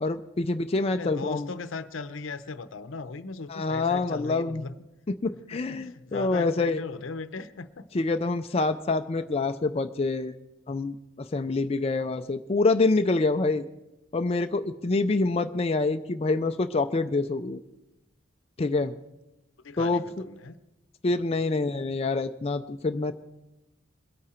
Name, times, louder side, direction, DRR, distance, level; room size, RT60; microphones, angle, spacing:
voice 1, 0.0-1.5 3.5-4.6 5.2-6.8 7.9-10.3 10.7-13.6 14.1-17.6 18.6-18.9 19.8-20.0 21.0-23.1, left 3 dB, 30° left, 7 dB, 0.4 m, -26 dB
voice 2, 0.9-4.7 5.3-7.9 9.1-9.3 19.6-20.6, left 4 dB, 75° left, 13 dB, 0.7 m, -38 dB
22.0 x 8.7 x 4.3 m, 0.96 s
head